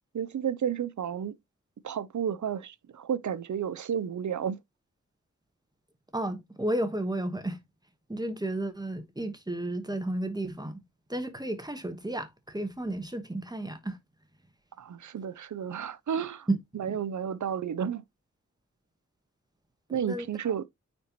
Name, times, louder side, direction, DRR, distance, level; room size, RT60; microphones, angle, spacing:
voice 1, 0.1-1.3 1.8-4.6 14.8-16.5 16.7-18.0 19.9-20.7, right 8 dB, 75° right, 0.6 m, -32 dB
voice 2, 6.1-7.6 8.1-10.8 11.1-14.0 16.5-16.6 16.9-17.0 19.9-20.3, right 1 dB, 15° right, 1.2 m, -32 dB
9.3 x 4.3 x 2.9 m
wide cardioid pair, 95°, 29 cm